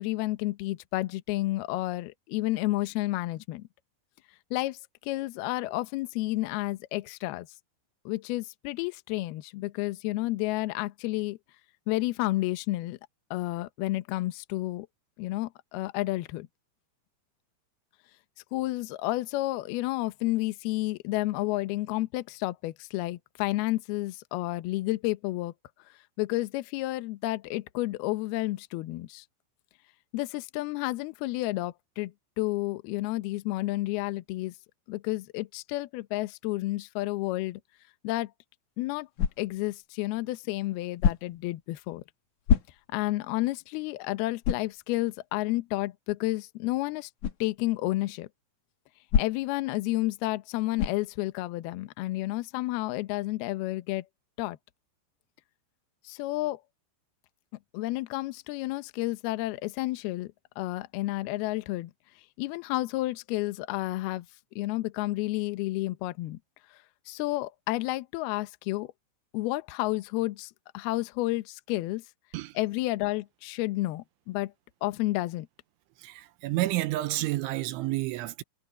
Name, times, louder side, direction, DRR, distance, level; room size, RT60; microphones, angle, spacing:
voice 1, 0.0-3.6 4.5-4.8 5.0-7.5 8.1-11.4 11.9-13.0 13.3-14.9 15.2-16.5 18.5-25.5 26.2-29.2 30.1-34.5 34.9-37.6 38.0-38.3 38.8-39.1 39.4-42.0 42.9-47.1 47.4-48.3 49.2-54.1 54.4-54.6 56.0-56.6 57.7-61.9 62.4-64.3 64.6-66.4 67.1-68.9 69.3-72.0 72.6-74.5 74.8-75.5, left 18 dB, 85° left, 2.2 m, -31 dB
sound 1, 39.1-39.7 41.0-41.5 42.4-43.1 43.6-43.7 44.4-44.8 47.2-47.4 49.1-49.6 50.8-51.1, left 8 dB, 60° left, 2.0 m, -27 dB
voice 2, 76.0-78.4, right 17 dB, 80° right, 3.0 m, -30 dB
omnidirectional pair, 5.8 m